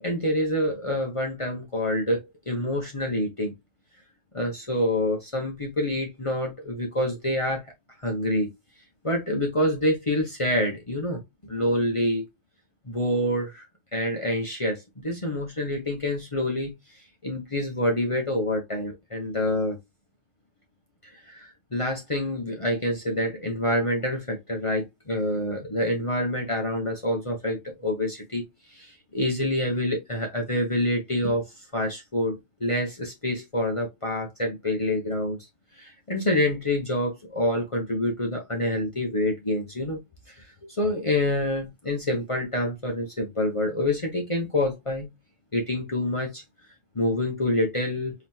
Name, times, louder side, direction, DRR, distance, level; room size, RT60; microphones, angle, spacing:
voice 1, 0.0-3.5 4.3-7.6 8.0-8.5 9.0-11.2 11.5-12.2 12.9-13.7 13.9-16.7 17.2-19.8 21.3-28.4 28.7-31.4 31.7-35.4 35.8-40.0 40.8-45.1 45.5-46.4 46.9-48.1, left 1 dB, 30° left, 0.7 m, -27 dB
4.0 x 3.0 x 2.7 m
omnidirectional pair, 1.5 m